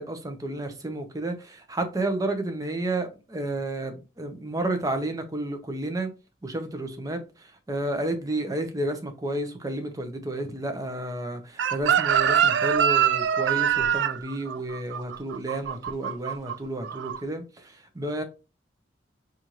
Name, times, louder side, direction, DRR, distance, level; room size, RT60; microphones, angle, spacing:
voice 1, 0.0-6.1 6.4-18.2, right 1 dB, 20° right, 0.6 m, -31 dB
Chicken rooster, 11.6-16.5 16.8-17.2, right 9 dB, 85° right, 0.3 m, -23 dB
4.3 x 2.5 x 2.9 m
head